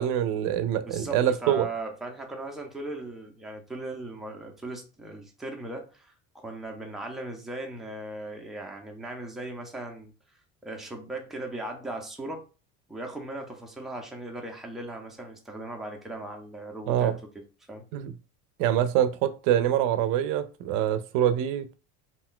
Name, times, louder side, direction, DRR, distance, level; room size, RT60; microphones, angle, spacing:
voice 1, 0.0-1.7 16.9-17.2 17.9-18.1 18.6-21.7, right 10 dB, 80° right, 11 dB, 0.5 m, -25 dB
voice 2, 0.8-10.1 10.6-12.4 12.9-17.1 17.7-17.9, right 2 dB, ahead, 1 dB, 0.5 m, -38 dB
2.5 x 2.2 x 3.7 m, 0.34 s
cardioid pair, 140°, 32 cm